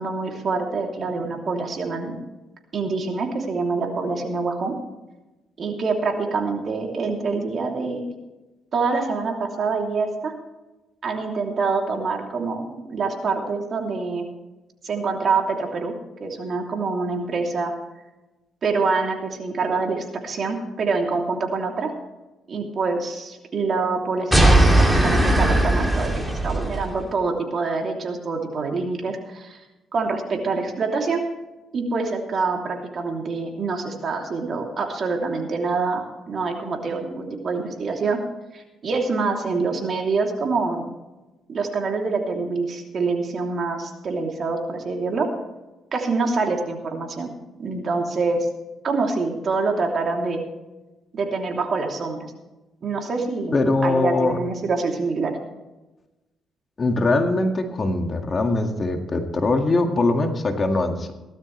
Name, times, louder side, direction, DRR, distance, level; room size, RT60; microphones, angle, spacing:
voice 1, 0.0-2.2 2.7-4.7 5.6-8.0 8.7-10.3 11.0-14.2 14.8-15.9 16.2-17.7 18.6-21.9 22.5-29.6 29.9-31.2 31.7-38.2 38.5-40.8 41.5-45.3 45.9-47.3 47.6-48.5 48.8-50.4 51.1-52.3 52.8-53.6 53.8-55.4, right 4 dB, 50° right, 2 dB, 3.0 m, -25 dB
sound 1, 24.3-26.9, right 1 dB, 5° right, 2.7 m, -18 dB
voice 2, 53.5-54.4 56.8-61.1, left 2 dB, 35° left, 4 dB, 2.0 m, -22 dB
17.5 x 12.5 x 3.3 m, 1.1 s
cardioid pair, 90°, 0 cm